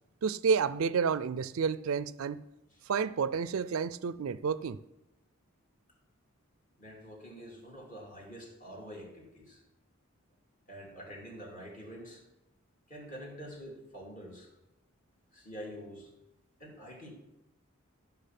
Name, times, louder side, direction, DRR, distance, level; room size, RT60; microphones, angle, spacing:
voice 1, 0.2-2.4 2.9-4.8, right 6 dB, 80° right, 0.4 m, -30 dB
voice 2, 6.8-9.6 10.7-12.2 12.9-14.5 15.3-16.1 16.6-17.1, equal, 40° left, 2.6 m, -46 dB
13.5 x 6.0 x 5.9 m
head